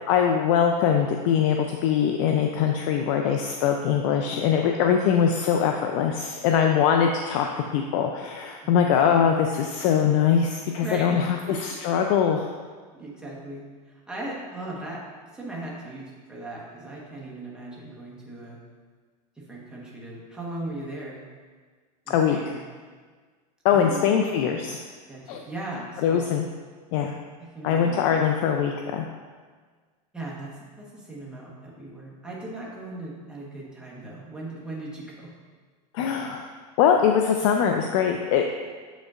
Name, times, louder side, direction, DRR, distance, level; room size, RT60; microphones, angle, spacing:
voice 1, 0.1-12.5 22.1-22.6 23.6-24.8 25.3-25.4 26.0-26.5 26.9-27.1 27.6-29.1 35.9-36.5 36.8-38.4, left 8 dB, 50° left, 4 dB, 0.4 m, -22 dB
voice 2, 8.6-9.0 10.8-11.2 11.5-11.6 12.9-15.0 15.3-18.6 19.4-21.2 22.0-22.6 23.7-24.1 25.1-26.3 27.4-28.1 30.1-30.5 30.8-35.3, right 2 dB, 5° right, -5 dB, 1.1 m, -38 dB
7.4 x 5.2 x 2.4 m, 1.5 s
supercardioid pair, 135°, 20 cm